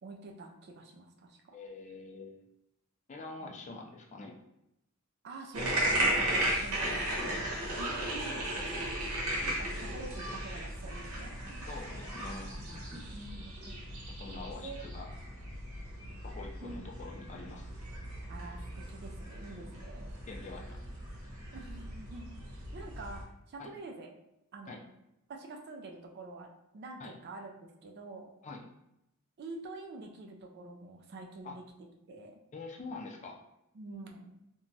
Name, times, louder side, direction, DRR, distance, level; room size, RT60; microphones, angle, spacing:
voice 1, 0.0-1.6 3.4-3.6 5.2-7.4 7.8-8.5 9.1-11.7 12.9-13.8 14.6-14.8 16.6-16.9 18.3-20.1 21.5-24.1 24.5-24.8 25.3-27.5 27.8-28.3 29.4-31.6 32.1-32.4 33.7-34.3, right 2 dB, 50° right, 2 dB, 0.4 m, -47 dB
voice 2, 1.5-2.4 3.1-4.3 6.8-7.1 11.7-12.5 14.1-15.1 16.2-17.7 20.3-20.8 23.6-23.7 24.7-24.8 27.0-27.1 28.4-28.6 31.4-31.6 32.5-33.4, left 3 dB, 35° left, 1 dB, 0.4 m, -45 dB
sound 1, 5.5-23.2, right 1 dB, 75° right, 0.8 m, -36 dB
2.8 x 2.2 x 2.6 m, 0.85 s
head